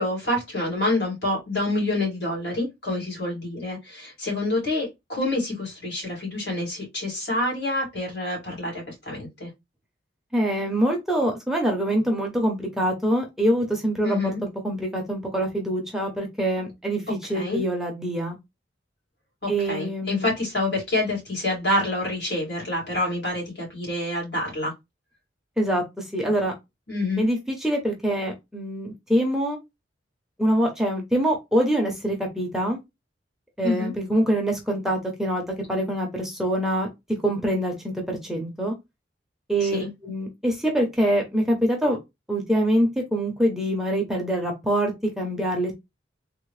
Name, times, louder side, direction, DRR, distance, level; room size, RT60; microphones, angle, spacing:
voice 1, 0.0-9.5 14.0-14.4 17.3-17.6 19.4-24.7 26.9-27.2 33.6-33.9 39.6-39.9, left 1 dB, 65° left, 2.0 m, -27 dB
voice 2, 10.3-14.3 14.6-17.0 17.3-18.4 19.5-20.3 25.6-25.8 26.1-26.5 27.2-29.6 30.4-32.8 33.6-36.9 37.2-38.7 39.5-42.0 42.3-44.9 45.2-45.7, right 1 dB, ahead, 0.6 m, -24 dB
3.5 x 2.1 x 3.1 m
head